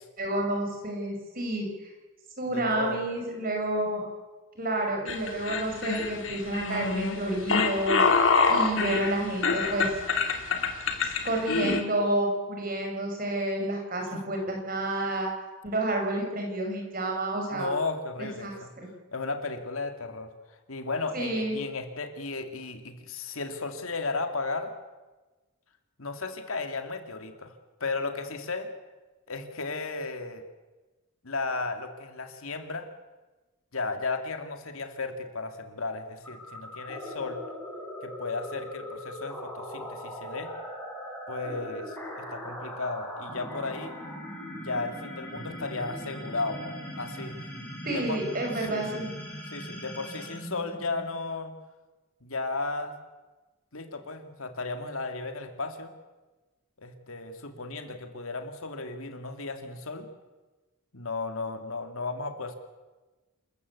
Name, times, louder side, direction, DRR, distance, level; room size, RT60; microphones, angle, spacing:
voice 1, 0.2-1.9 2.4-4.0 4.6-9.9 11.2-15.3 15.6-17.7 18.2-18.9 21.1-21.6 47.8-49.1, right 1 dB, 40° right, 2 dB, 5.6 m, -30 dB
voice 2, 2.5-3.0 14.1-14.2 17.5-18.7 19.1-20.3 20.7-24.7 26.0-27.5 27.8-28.7 29.3-30.4 31.2-32.9 33.7-37.4 38.0-40.5 41.3-44.0 44.5-47.4 47.9-48.2 48.6-49.1 49.5-51.5 52.2-52.9 53.7-55.9 56.8-60.1 60.9-62.5, left 3 dB, 75° left, 6 dB, 2.3 m, -34 dB
sound 1, 5.1-11.8, left 4 dB, 60° left, 2.5 m, -26 dB
sound 2, 36.2-51.4, equal, 10° left, 5.7 m, -40 dB
27.5 x 14.5 x 8.3 m, 1.2 s
head